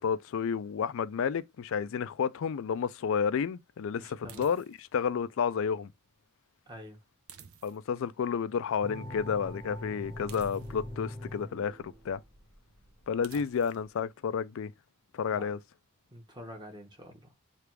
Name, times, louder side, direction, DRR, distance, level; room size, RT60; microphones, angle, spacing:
voice 1, 0.0-5.9 7.6-12.2 13.1-14.7 15.1-15.6, left 6 dB, 65° left, 0.3 m, -31 dB
voice 2, 4.0-4.4 6.7-7.0 15.3-15.5 16.1-17.3, equal, 20° right, 1.1 m, -47 dB
sound 1, 4.3-5.0 7.3-8.0 10.3-11.0 13.2-13.9, right 7 dB, 75° right, 0.6 m, -52 dB
sound 2, 8.8-13.9, left 1 dB, 5° left, 0.8 m, -43 dB
3.3 x 2.4 x 4.5 m
head